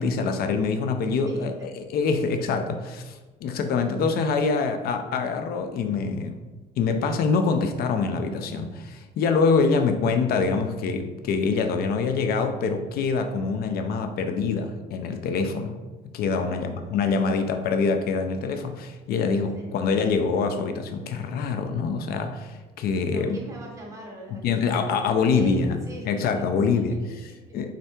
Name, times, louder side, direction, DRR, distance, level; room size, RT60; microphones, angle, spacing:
voice 1, 0.0-6.4 6.8-15.7 16.1-23.4 24.3-25.8 26.1-27.0 27.5-27.7, left 4 dB, 65° left, 7 dB, 0.4 m, -25 dB
voice 2, 1.2-1.7 2.0-2.2 3.8-4.0 16.3-17.3 19.5-19.7 23.1-26.4 26.7-26.8 27.1-27.6, right 1 dB, 20° right, -2 dB, 1.3 m, -42 dB
3.6 x 3.3 x 4.3 m, 1.2 s
cardioid pair, 110°, 17 cm